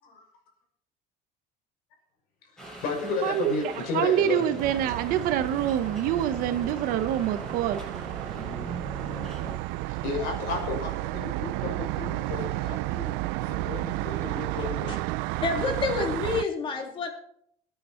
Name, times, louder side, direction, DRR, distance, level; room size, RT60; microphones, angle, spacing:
voice 1, 2.5-4.4 9.9-14.9, left 4 dB, 60° left, 1 dB, 5.8 m, -33 dB
sound 1, 2.6-9.6, right 1 dB, 5° left, 6.2 m, -40 dB
voice 2, 3.2-7.8, right 11 dB, 55° right, 11 dB, 1.0 m, -26 dB
sound 2, 4.6-16.4, right 19 dB, 75° right, 0.5 m, -32 dB
voice 3, 14.6-15.0 15.4-17.1, left 4 dB, 30° left, 4 dB, 2.3 m, -29 dB
21.0 x 9.2 x 4.4 m, 0.69 s
cardioid pair, 175°, 18 cm